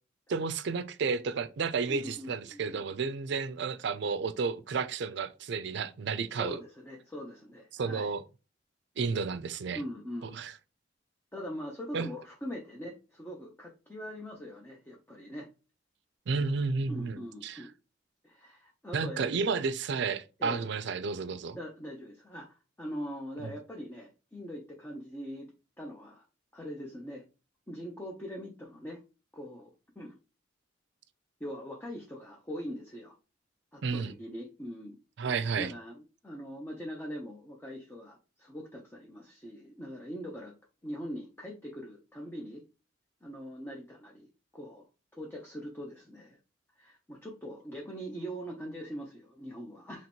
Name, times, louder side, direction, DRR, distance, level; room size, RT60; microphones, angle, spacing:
voice 1, 0.3-6.6 7.7-8.2 9.0-9.8 10.3-10.5 11.9-12.1 16.3-17.6 18.9-21.6 23.4-23.5 33.8-34.1 35.2-35.7, right 5 dB, 65° right, 0.4 m, -32 dB
voice 2, 1.9-2.8 6.3-8.1 9.7-10.4 11.3-15.5 16.9-17.7 18.2-19.3 20.4-20.7 21.5-26.2 26.5-27.2 27.7-29.0 29.3-29.7 30.0-30.2 31.4-33.1 33.7-35.0 35.4-40.5 40.8-42.6 43.2-44.8 45.1-46.4 46.8-50.1, equal, 10° left, 0.6 m, -42 dB
3.0 x 2.9 x 4.3 m
head